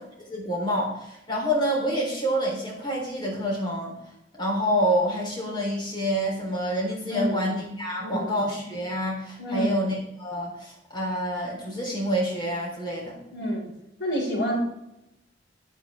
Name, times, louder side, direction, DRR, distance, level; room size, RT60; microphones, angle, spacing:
voice 1, 0.2-4.0 4.4-13.2, equal, 25° left, -2 dB, 3.9 m, -27 dB
voice 2, 7.1-7.5 8.0-8.3 9.4-9.7 13.3-13.7 14.0-14.6, equal, 85° left, -2 dB, 5.6 m, -28 dB
13.0 x 12.0 x 3.7 m, 0.85 s
head